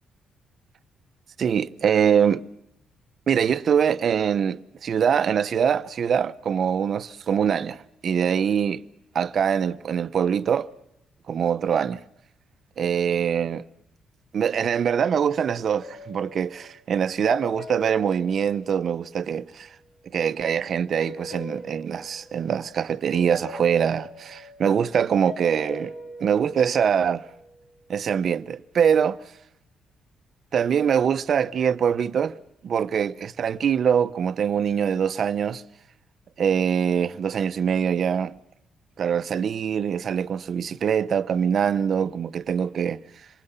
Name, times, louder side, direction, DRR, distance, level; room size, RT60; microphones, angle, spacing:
voice 1, 1.4-2.4 3.3-8.8 9.1-10.7 11.3-12.0 12.8-13.6 14.3-19.7 20.1-25.9 26.2-27.2 27.9-29.2 30.5-32.4 32.6-35.6 36.4-38.3 39.0-43.0, right 7 dB, 55° right, 0.8 m, -23 dB
sound 1, 15.7-19.5 21.0-22.8 23.1-27.6, left 1 dB, 85° left, 7.9 m, -41 dB
27.5 x 20.5 x 5.6 m
cardioid pair, 90°, 0 cm